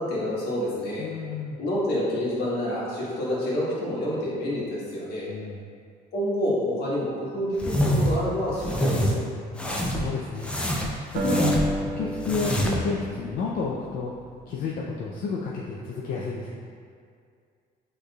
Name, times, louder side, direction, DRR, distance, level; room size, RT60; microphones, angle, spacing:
voice 1, 0.0-1.1 1.6-5.3 6.1-9.3, left 1 dB, 75° left, -7 dB, 1.5 m, -28 dB
voice 2, 1.0-1.6 5.3-5.7 9.5-10.6 11.1-11.6 11.8-14.1 14.5-16.6, left 4 dB, 60° left, -3 dB, 0.5 m, -31 dB
sound 1, 7.6-8.2 8.6-9.1 9.6-10.1 10.4-11.8 12.2-12.9, equal, 5° left, 0.5 m, -25 dB
sound 2, 11.2-14.4, equal, 70° right, 0.7 m, -31 dB
6.5 x 3.2 x 2.3 m, 2.2 s
cardioid pair, 110°, 17 cm